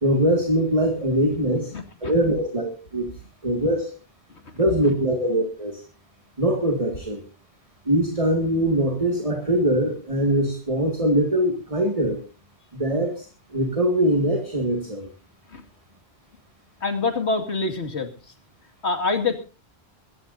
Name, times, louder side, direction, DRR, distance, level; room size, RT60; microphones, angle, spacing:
voice 1, 0.0-1.7 2.0-3.1 3.4-3.9 4.6-5.8 6.4-7.2 7.9-12.2 12.7-13.3 13.5-15.1, right 1 dB, 30° right, 4 dB, 2.1 m, -22 dB
voice 2, 1.7-2.1 15.5-15.6 16.8-18.1 18.8-19.4, left 3 dB, 80° left, 7 dB, 2.5 m, -25 dB
22.0 x 15.5 x 2.7 m, 0.32 s
omnidirectional pair, 1.1 m